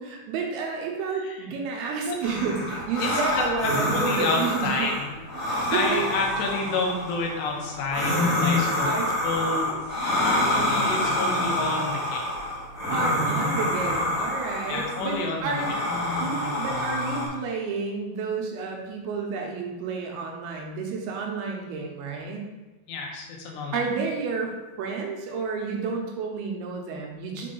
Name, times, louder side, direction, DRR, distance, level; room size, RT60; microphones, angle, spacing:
voice 1, 0.0-4.9 5.5-6.0 8.8-9.2 12.9-15.7 16.2-22.4 23.7-27.5, right 5 dB, 80° right, 1 dB, 2.5 m, -30 dB
voice 2, 1.1-1.5 2.0-2.2 3.0-5.1 5.7-8.9 9.2-9.8 10.2-12.2 14.7-15.5 22.9-23.8, left 3 dB, 85° left, 0 dB, 3.1 m, -29 dB
sound 1, 2.2-17.3, left 1 dB, 35° left, 1.6 m, -27 dB
6.6 x 3.8 x 3.8 m, 1.1 s
omnidirectional pair, 4.7 m